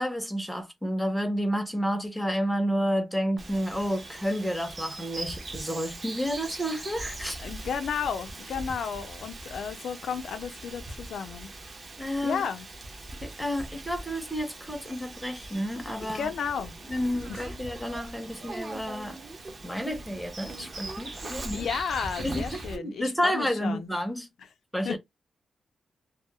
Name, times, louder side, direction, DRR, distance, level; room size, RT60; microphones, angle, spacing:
voice 1, 0.0-7.4 12.0-12.4 13.2-16.3 16.9-19.2 19.6-21.7 22.2-24.3 24.7-25.0, equal, ahead, 0.6 m, -30 dB
Bird vocalization bird call bird song, 3.4-22.8, right 2 dB, 35° right, 0.6 m, -41 dB
voice 2, 7.4-11.5 12.2-12.7 16.0-16.7 17.3-17.4 21.5-23.9 24.8-25.0, left 6 dB, 85° left, 0.4 m, -33 dB
2.1 x 2.0 x 2.8 m
wide cardioid pair, 145°, 0 cm